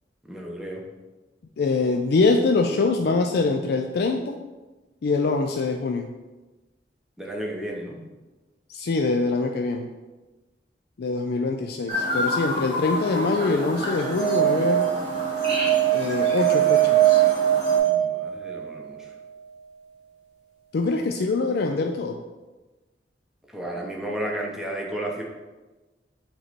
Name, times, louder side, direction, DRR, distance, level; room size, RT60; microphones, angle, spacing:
voice 1, 0.3-0.8 7.2-8.1 17.8-19.1 23.5-25.2, right 1 dB, 5° right, -2 dB, 0.9 m, -33 dB
voice 2, 1.6-4.4 5.0-6.1 8.7-9.9 11.0-14.9 15.9-17.2 20.7-22.2, left 3 dB, 65° left, 4 dB, 0.4 m, -24 dB
Chirp tweet, 11.9-17.8, left 1 dB, 30° right, 1.4 m, -30 dB
sound 1, 13.9-18.7, right 13 dB, 80° left, 1.5 m, -21 dB
7.8 x 3.2 x 4.1 m, 1.2 s
head